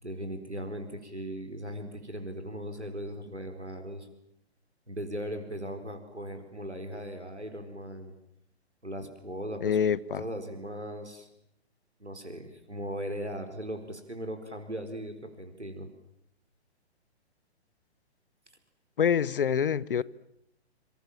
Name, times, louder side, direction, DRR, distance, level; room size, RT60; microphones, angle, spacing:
voice 1, 0.0-4.1 4.9-8.1 8.8-9.8 10.2-11.3 12.0-15.9, equal, 90° right, 4.7 m, -38 dB
voice 2, 9.6-10.2 19.0-20.0, left 7 dB, 55° left, 1.1 m, -26 dB
27.5 x 26.0 x 7.5 m
figure-of-eight pair, 125°, 33 cm